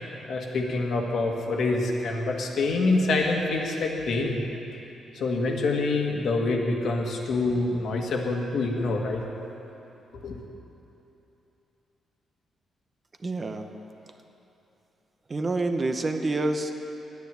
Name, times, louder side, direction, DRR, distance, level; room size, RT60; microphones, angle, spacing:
voice 1, 0.3-4.4 5.1-9.2 10.2-10.4, left 3 dB, 60° left, 1 dB, 1.7 m, -26 dB
voice 2, 13.2-13.6 15.3-16.7, right 2 dB, 25° right, 5 dB, 0.7 m, -27 dB
11.5 x 9.5 x 9.2 m, 3.0 s
cardioid pair, 140°, 0 cm